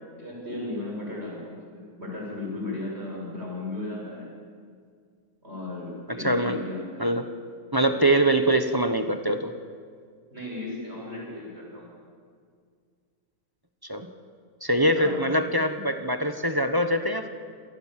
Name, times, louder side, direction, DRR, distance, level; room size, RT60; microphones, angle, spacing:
voice 1, 0.2-4.3 5.4-7.1 10.3-11.9 14.9-15.3, left 2 dB, 40° right, -3 dB, 7.2 m, -35 dB
voice 2, 6.1-6.6 7.0-7.3 7.7-9.5 13.8-14.1 14.6-17.3, right 1 dB, 15° right, 7 dB, 0.9 m, -23 dB
26.5 x 18.5 x 7.6 m, 2.1 s
omnidirectional pair, 1.6 m